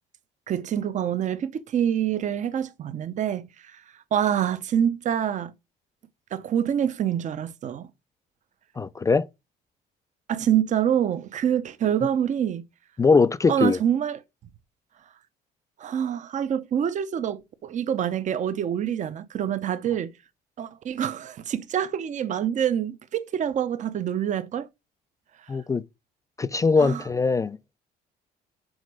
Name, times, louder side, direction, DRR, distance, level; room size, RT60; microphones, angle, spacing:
voice 1, 0.5-3.4 3.7-3.8 4.1-5.5 6.3-7.9 10.3-12.6 13.5-14.2 15.8-20.1 20.6-24.7 26.8-27.0, right 9 dB, 45° right, 0.7 m, -26 dB
voice 2, 8.8-9.2 13.0-13.8 25.5-25.8 26.4-27.8, left 4 dB, 20° left, 0.3 m, -21 dB
6.4 x 4.2 x 4.8 m
cardioid pair, 110°, 17 cm